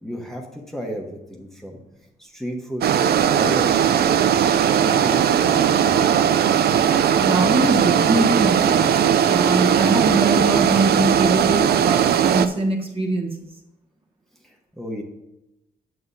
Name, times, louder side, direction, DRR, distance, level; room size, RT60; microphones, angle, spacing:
voice 1, 0.0-1.8 2.2-4.3 4.8-6.1 14.4-15.0, equal, ahead, 0 dB, 1.1 m, -33 dB
sound 1, 2.8-12.5, right 9 dB, 65° right, 0.5 m, -18 dB
voice 2, 7.2-13.5, right 2 dB, 30° right, 1 dB, 1.3 m, -23 dB
9.4 x 7.6 x 2.7 m, 0.92 s
cardioid pair, 115°, 18 cm